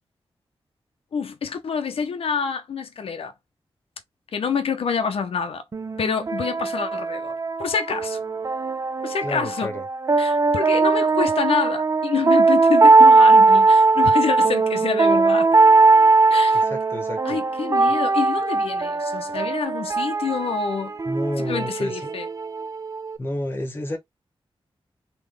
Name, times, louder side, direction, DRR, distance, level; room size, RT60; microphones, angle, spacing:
voice 1, 1.1-3.3 4.3-5.6 6.0-7.3 7.6-8.2 9.0-9.7 10.2-15.5 16.3-16.7 17.2-20.9 21.4-22.3, left 6 dB, 75° left, 0.6 m, -27 dB
sound 1, 5.7-23.2, right 3 dB, 30° right, 0.4 m, -19 dB
voice 2, 9.2-9.8 16.5-17.4 21.1-22.2 23.2-24.0, left 1 dB, 20° left, 1.0 m, -30 dB
3.7 x 2.9 x 3.3 m
wide cardioid pair, 170°, 10 cm